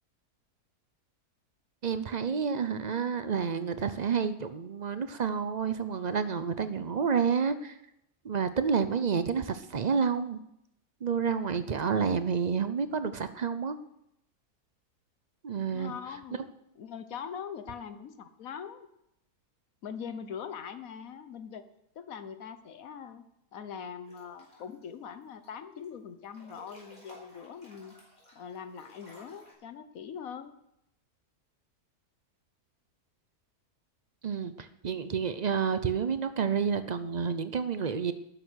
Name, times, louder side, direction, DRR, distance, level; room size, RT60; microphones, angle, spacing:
voice 1, 1.8-7.8 8.2-10.4 11.0-13.8 15.4-15.9 34.2-38.1, right 6 dB, 55° right, 12 dB, 0.4 m, -29 dB
voice 2, 15.6-16.4 16.8-18.9 19.8-21.6 21.9-23.2 23.5-27.9 28.3-30.5, left 7 dB, 65° left, 11 dB, 1.4 m, -42 dB
Breathing / Bathtub (filling or washing) / Splash splatter, 24.1-24.8 25.2-25.9 26.2-29.5, left 1 dB, 30° left, 5.1 m, -55 dB
12.5 x 10.0 x 6.3 m, 0.81 s
omnidirectional pair, 1.6 m